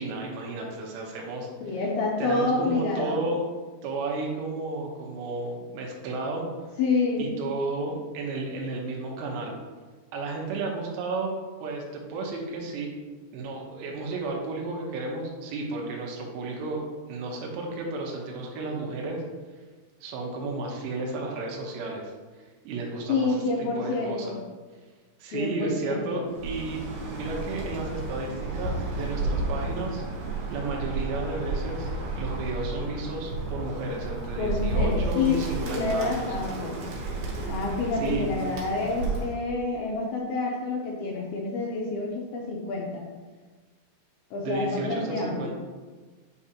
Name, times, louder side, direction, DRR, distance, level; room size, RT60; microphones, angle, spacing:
voice 1, 0.0-1.5 2.2-3.4 3.8-6.5 7.2-9.5 10.1-12.9 13.3-19.2 20.0-22.1 22.6-24.4 25.2-26.8 27.1-30.0 30.5-31.9 32.2-36.3 38.0-38.3 44.4-45.5, right 3 dB, 90° right, 0 dB, 3.1 m, -32 dB
voice 2, 1.6-3.2 6.8-7.2 23.1-24.4 25.3-26.3 34.4-36.8 37.5-43.0 44.3-45.5, left 3 dB, 75° left, -3 dB, 2.4 m, -28 dB
Bird, 26.3-39.4, right 2 dB, 65° right, 2.9 m, -32 dB
8.4 x 4.8 x 2.8 m, 1.4 s
omnidirectional pair, 4.9 m